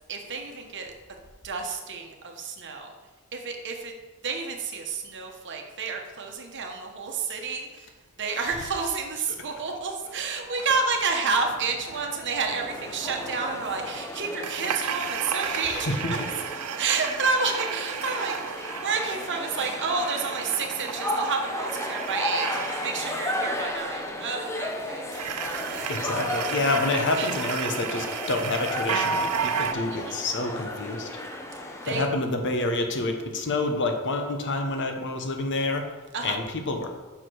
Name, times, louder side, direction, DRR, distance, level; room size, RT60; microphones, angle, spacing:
voice 1, 0.1-0.9 1.4-2.9 3.3-3.9 4.2-7.9 8.2-15.9 16.8-25.1 25.5-26.0 27.1-27.3 29.9-30.3 31.8-32.1 36.1-36.4, right 4 dB, 55° right, 3 dB, 1.0 m, -30 dB
sound 1, 10.0-16.0, left 2 dB, 80° left, 1.3 m, -47 dB
sound 2, 11.4-14.0 14.4-23.9 25.1-29.7, right 8 dB, 85° right, 0.5 m, -34 dB
sound 3, 12.5-32.0, left 1 dB, 15° left, 0.7 m, -34 dB
voice 2, 15.4-16.2 25.9-31.1 31.9-35.9 36.2-36.9, left 2 dB, 55° left, 5 dB, 1.0 m, -28 dB
5.9 x 4.9 x 6.2 m, 1.2 s
head